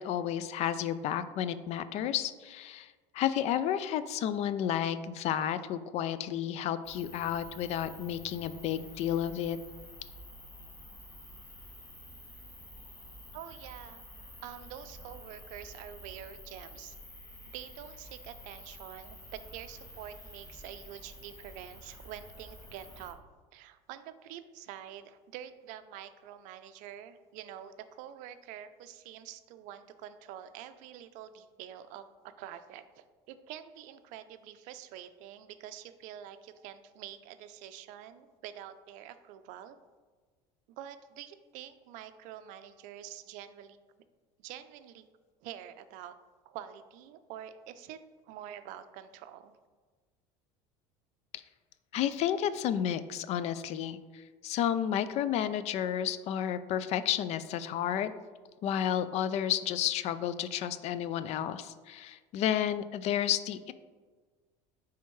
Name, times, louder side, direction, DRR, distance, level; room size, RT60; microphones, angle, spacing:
voice 1, 0.0-9.6 51.9-58.1 58.6-63.7, left 10 dB, 50° left, 14 dB, 0.4 m, -31 dB
sound 1, 6.8-23.1, equal, 25° left, 1.4 m, -50 dB
voice 2, 13.3-14.1 14.4-17.0 17.5-23.2 23.5-39.8 40.7-43.8 44.4-45.0 45.4-46.2 46.4-49.6, right 10 dB, 65° right, 11 dB, 0.4 m, -47 dB
9.2 x 3.5 x 3.1 m, 1.4 s
supercardioid pair, 110°, 14 cm